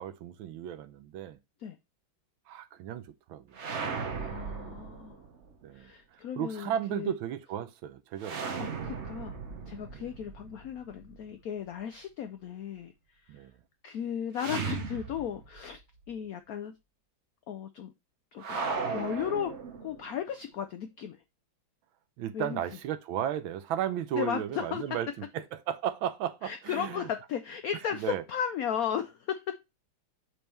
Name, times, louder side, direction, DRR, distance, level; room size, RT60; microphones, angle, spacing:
voice 1, 0.0-1.4 2.5-3.6 5.6-8.4 8.7-8.8 9.9-10.1 13.3-13.6 22.2-25.1 25.3-27.1 27.9-28.2, right 10 dB, 85° right, 1.5 m, -35 dB
sound 1, 3.5-5.5 8.2-11.2 14.3-15.8 16.0-16.1 18.4-20.2, right 5 dB, 50° right, 0.9 m, -37 dB
voice 2, 4.1-5.2 5.7-7.1 8.6-9.4 9.7-12.9 13.3-13.4 13.8-15.8 16.1-16.7 17.5-17.9 18.3-18.6 18.9-19.5 19.8-21.2 22.3-22.6 24.1-24.8 26.4-29.6, left 8 dB, 85° left, 0.7 m, -35 dB
5.3 x 4.3 x 4.4 m
omnidirectional pair, 2.2 m